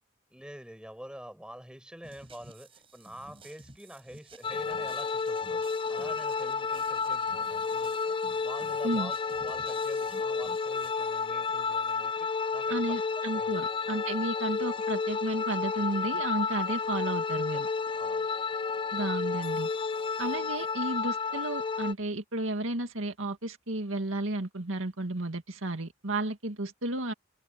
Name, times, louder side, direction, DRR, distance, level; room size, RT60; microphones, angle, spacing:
voice 1, 0.3-5.6 5.9-13.0 13.3-13.6 17.5-17.7 18.0-18.3, equal, 5° right, 7.2 m, -47 dB
sound 1, 2.0-10.9, right 3 dB, 25° right, 5.6 m, -54 dB
sound 2, 4.4-21.9, left 5 dB, 25° left, 0.4 m, -31 dB
voice 2, 12.7-17.7 18.9-19.7 20.2-27.1, right 2 dB, 75° right, 2.0 m, -33 dB
head